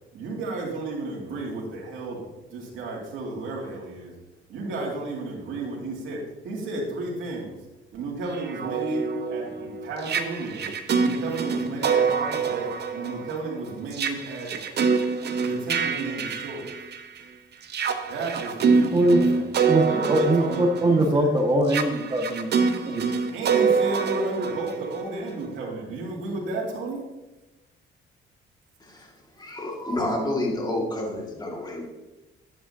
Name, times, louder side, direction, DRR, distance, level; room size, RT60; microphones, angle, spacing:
voice 1, 0.1-4.1 4.5-7.6 7.9-14.7 15.3-16.7 18.0-19.4 19.8-21.3 23.3-27.1, right 2 dB, 80° right, -3 dB, 2.6 m, -33 dB
sound 1, 8.3-17.2 17.6-25.4, right 5 dB, 55° right, 0.9 m, -25 dB
voice 2, 19.7-22.6 22.8-23.0, right 1 dB, 20° right, 2 dB, 1.7 m, -22 dB
voice 3, 28.8-31.9, left 1 dB, 20° left, -1 dB, 2.1 m, -29 dB
11.0 x 8.2 x 2.8 m, 1.0 s
cardioid pair, 90°, 20 cm